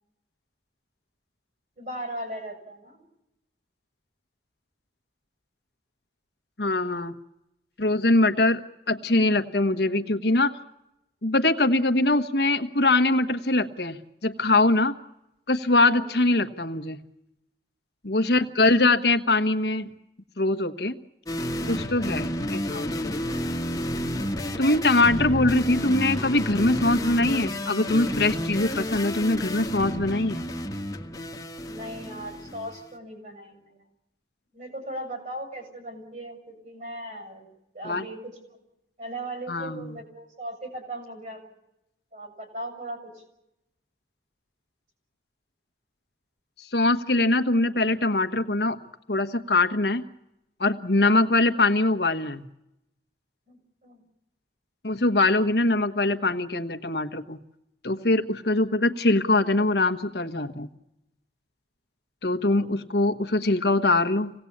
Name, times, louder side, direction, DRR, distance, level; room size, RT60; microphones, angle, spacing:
voice 1, 1.8-3.0 15.8-16.1 24.3-24.4 25.2-25.3 31.6-33.8 34.5-37.5 37.7-38.6 39.0-41.4 42.1-43.2 51.0-51.2 53.5-54.0 62.6-62.7, right 1 dB, 45° right, 5 dB, 7.0 m, -38 dB
voice 2, 6.6-7.1 7.8-8.6 8.9-10.5 11.2-14.0 14.2-14.9 15.5-17.0 18.0-19.9 20.4-20.9 21.7-23.2 24.6-30.4 37.8-38.0 39.5-39.9 46.7-48.8 49.1-50.0 50.6-52.4 54.8-57.4 57.8-60.7 62.2-64.3, left 2 dB, 70° left, 8 dB, 1.3 m, -23 dB
sound 1, 21.3-32.8, left 1 dB, 20° left, 1.5 m, -30 dB
26.5 x 18.0 x 8.7 m, 0.88 s
head